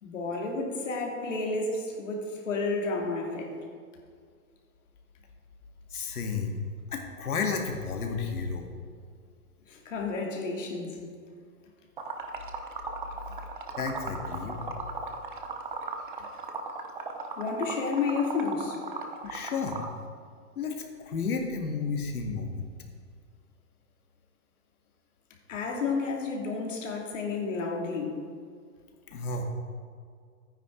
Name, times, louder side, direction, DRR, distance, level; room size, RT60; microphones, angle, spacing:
voice 1, 0.0-3.5 9.7-11.0 17.4-18.8 25.5-28.2, left 4 dB, 55° left, 0 dB, 2.4 m, -31 dB
voice 2, 5.9-6.6 6.9-8.7 13.8-15.0 19.2-19.8 20.6-20.7 21.0-22.7 29.1-29.4, left 5 dB, 70° left, 3 dB, 2.0 m, -32 dB
Liquid, 12.0-20.0, right 4 dB, 35° right, 0.7 m, -37 dB
13.0 x 9.5 x 3.8 m, 2.1 s
hypercardioid pair, 180°, 45 cm